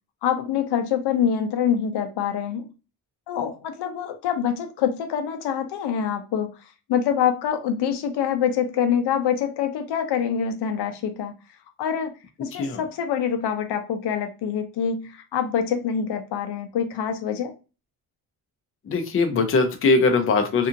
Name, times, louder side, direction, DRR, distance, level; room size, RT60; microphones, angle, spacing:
voice 1, 0.2-2.7 3.3-6.5 6.9-11.3 11.8-12.1 12.4-17.5, left 8 dB, 85° left, 7 dB, 0.6 m, -25 dB
voice 2, 18.9-20.7, left 3 dB, 35° left, 6 dB, 0.5 m, -21 dB
2.7 x 2.5 x 2.5 m, 0.31 s
cardioid pair, 140°, 39 cm